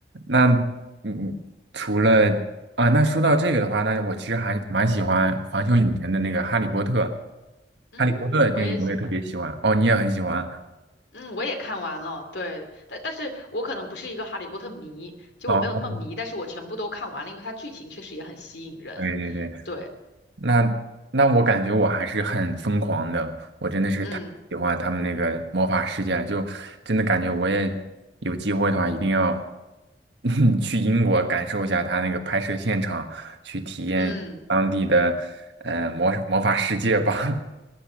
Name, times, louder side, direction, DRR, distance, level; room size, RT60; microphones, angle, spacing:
voice 1, 0.1-0.7 1.0-1.4 1.7-2.4 2.8-7.2 8.0-10.6 15.5-15.7 19.0-19.6 20.4-20.8 21.1-24.2 24.5-27.8 28.2-29.4 30.2-34.1 34.5-35.3 35.6-37.4, right 2 dB, 75° right, 6 dB, 1.4 m, -23 dB
voice 2, 7.9-9.1 11.1-19.1 19.6-19.9 24.0-24.3 34.0-34.4, left 2 dB, 75° left, 5 dB, 2.7 m, -34 dB
20.0 x 10.5 x 6.3 m, 1.0 s
head